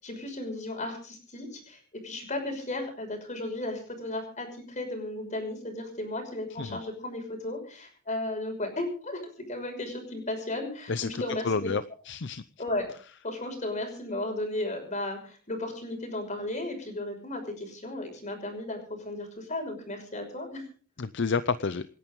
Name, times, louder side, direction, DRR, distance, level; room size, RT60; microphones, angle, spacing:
voice 1, 0.0-9.2 9.5-11.7 12.6-12.9 13.2-18.8 19.0-20.6, left 1 dB, 35° left, 4 dB, 5.9 m, -35 dB
voice 2, 11.4-12.4 21.0-21.9, left 4 dB, 60° left, 13 dB, 0.7 m, -29 dB
27.5 x 11.0 x 3.8 m, 0.40 s
head